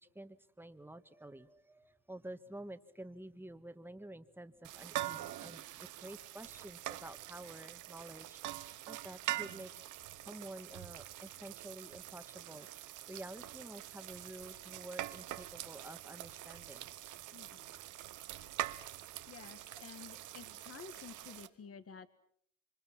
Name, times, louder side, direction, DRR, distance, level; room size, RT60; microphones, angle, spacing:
voice 1, 0.0-9.7 10.2-16.9, right 1 dB, 5° right, 10 dB, 1.6 m, -50 dB
sound 1, 4.6-21.5, right 14 dB, 90° right, 1.2 m, -44 dB
voice 2, 17.3-17.7 18.8-19.0 19.3-22.1, left 6 dB, 50° left, 12 dB, 1.6 m, -52 dB
27.5 x 25.0 x 5.9 m, 0.66 s
cardioid pair, 90°, 30 cm